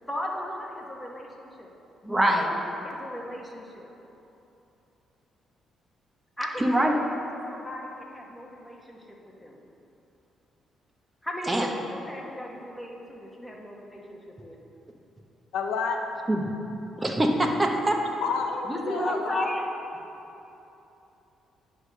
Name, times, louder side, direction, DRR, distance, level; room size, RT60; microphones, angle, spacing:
voice 1, 0.0-1.7 2.0-3.9 6.4-9.6 11.2-14.6 18.6-19.7, equal, 10° left, -1 dB, 1.1 m, -36 dB
voice 2, 2.1-2.5 6.6-7.0 11.5-11.7 16.3-16.4 17.0-18.0, right 1 dB, 20° right, 2 dB, 0.9 m, -23 dB
voice 3, 15.5-16.0 18.2-19.5, left 5 dB, 80° left, 3 dB, 0.5 m, -29 dB
9.6 x 3.3 x 6.3 m, 3.0 s
cardioid pair, 90°, 0 cm